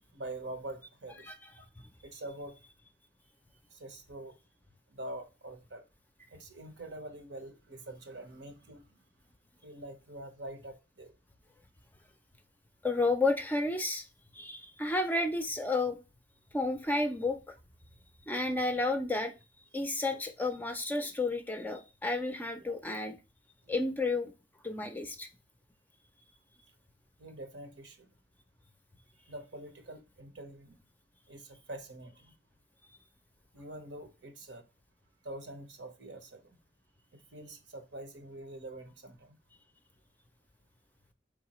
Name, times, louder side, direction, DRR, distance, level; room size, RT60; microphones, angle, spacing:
voice 1, 0.1-1.3 1.6-1.7 2.0-2.6 3.7-4.4 4.9-5.8 6.3-9.0 9.6-11.1 22.7-22.8 27.2-28.1 29.3-30.8 31.3-32.3 33.5-34.6 35.2-36.6 37.1-39.4, right 1 dB, 90° right, 1.0 m, -45 dB
voice 2, 12.8-14.0 14.3-16.0 16.5-17.5 18.3-19.3 19.7-23.1 23.7-24.3 24.6-25.3, left 2 dB, 10° left, 0.4 m, -31 dB
4.6 x 3.6 x 3.0 m
head